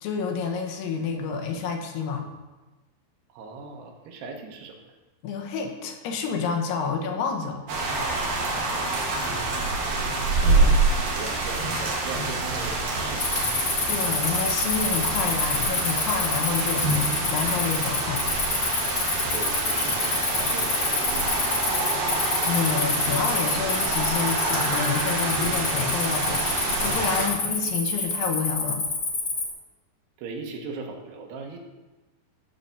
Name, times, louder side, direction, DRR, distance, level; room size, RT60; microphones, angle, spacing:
voice 1, 0.0-2.2 5.2-7.7 10.4-10.9 13.9-16.9 17.2-18.3 22.4-28.9, left 5 dB, 85° left, 3 dB, 3.2 m, -29 dB
voice 2, 3.3-4.8 8.0-10.0 10.4-10.8 11.1-13.3 19.0-21.6 30.2-31.6, right 4 dB, 85° right, 3 dB, 3.2 m, -40 dB
sound 1, 7.7-27.3, right 3 dB, 60° right, 3.2 m, -27 dB
Cricket, 13.2-29.5, left 3 dB, 65° left, 1.0 m, -27 dB
13.0 x 4.5 x 6.8 m, 1.2 s
omnidirectional pair, 4.7 m